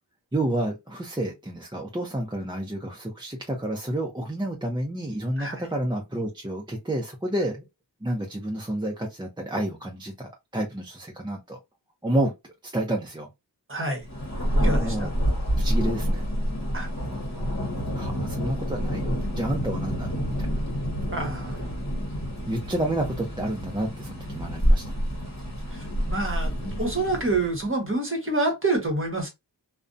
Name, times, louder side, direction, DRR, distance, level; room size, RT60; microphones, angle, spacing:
voice 1, 0.3-7.6 8.0-11.6 12.0-12.3 12.6-13.3 14.6-15.1 15.6-16.3 17.9-20.6 22.5-25.0, right 1 dB, 10° right, 0.5 m, -30 dB
voice 2, 5.4-5.7 13.7-14.1 14.6-15.1 16.7-16.9 21.1-21.8 25.7-29.3, right 2 dB, 30° right, 1.0 m, -28 dB
Thunder, 14.0-27.7, equal, 40° left, 1.1 m, -28 dB
2.5 x 2.1 x 2.5 m
wide cardioid pair, 65°, 43 cm